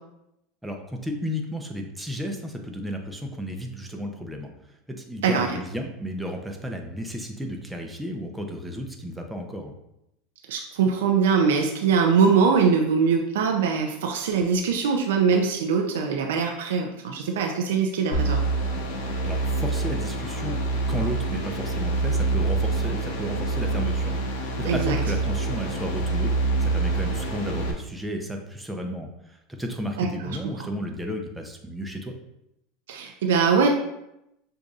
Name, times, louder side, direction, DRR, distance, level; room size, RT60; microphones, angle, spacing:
voice 1, 0.6-9.7 19.2-20.6 20.9-32.1, equal, 5° right, 2 dB, 0.6 m, -33 dB
voice 2, 10.5-18.4 24.7-25.0 30.0-30.1 32.9-33.7, right 5 dB, 85° right, 2 dB, 0.4 m, -22 dB
sound 1, 18.1-27.7, right 3 dB, 70° left, 0.7 m, -26 dB
6.5 x 2.6 x 2.4 m, 0.85 s
supercardioid pair, 120°, 0 cm